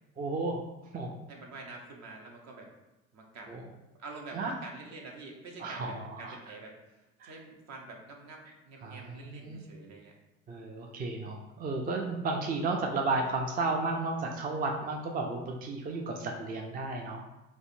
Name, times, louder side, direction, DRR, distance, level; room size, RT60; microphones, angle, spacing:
voice 1, 0.2-0.6 0.9-1.1 3.5-3.6 4.3-4.5 5.6-5.9 6.2-6.4 7.2-7.3 8.8-9.6 10.5-17.2, right 3 dB, 30° right, 2 dB, 0.4 m, -33 dB
voice 2, 1.3-2.7 3.1-3.5 4.0-10.2, right 3 dB, 60° right, 1 dB, 0.7 m, -47 dB
3.4 x 2.1 x 2.5 m, 1.0 s
supercardioid pair, 70°, 31 cm